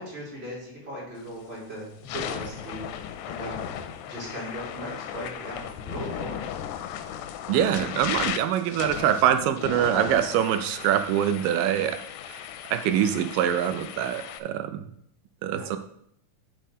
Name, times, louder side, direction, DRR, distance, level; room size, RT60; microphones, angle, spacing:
voice 1, 0.0-3.7 4.0-6.6 15.5-15.8, equal, 20° right, -6 dB, 3.1 m, -38 dB
sound 1, 1.2-1.5 1.9-14.4, left 10 dB, 90° left, 2.3 m, -36 dB
voice 2, 7.5-12.0 12.3-12.4 12.7-14.8 15.4-15.8, right 10 dB, 80° right, 9 dB, 2.2 m, -24 dB
7.5 x 6.6 x 4.1 m, 0.70 s
omnidirectional pair, 4.0 m